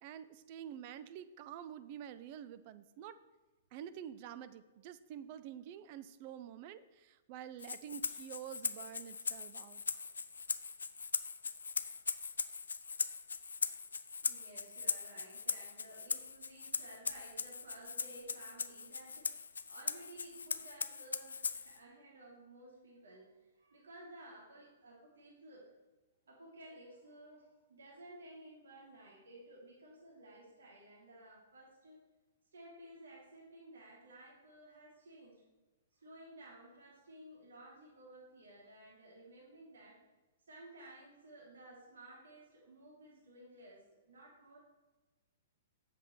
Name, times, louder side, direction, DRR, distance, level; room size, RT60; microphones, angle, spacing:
voice 1, 0.0-3.2 3.7-9.8, right 10 dB, 45° right, 13 dB, 0.5 m, -48 dB
Rattle (instrument), 7.6-21.8, left 5 dB, 80° left, 0.4 m, -40 dB
voice 2, 14.2-25.7 26.3-32.0 32.5-35.4 35.9-40.0 40.5-44.6, right 1 dB, 70° right, -4 dB, 3.1 m, -55 dB
7.9 x 7.1 x 4.6 m, 1.2 s
figure-of-eight pair, 115°, 0 cm